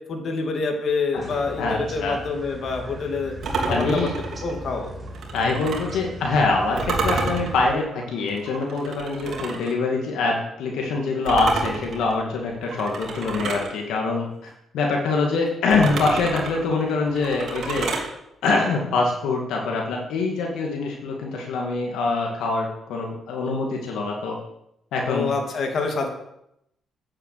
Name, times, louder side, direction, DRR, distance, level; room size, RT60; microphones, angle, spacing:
voice 1, 0.1-3.3 3.6-4.1 4.4-4.9 25.1-26.1, left 4 dB, 55° left, 2 dB, 2.6 m, -26 dB
sound 1, 1.1-7.7, right 1 dB, 25° right, 3.6 m, -39 dB
voice 2, 1.6-2.2 3.7-4.2 5.3-17.9 18.4-24.4 24.9-25.3, left 3 dB, 85° left, 0 dB, 2.2 m, -24 dB
sound 2, 3.4-6.0 6.8-9.8 11.3-13.7 15.7-18.1, right 3 dB, 65° right, 2.8 m, -30 dB
9.3 x 7.6 x 8.0 m, 0.79 s
cardioid pair, 90°, 0 cm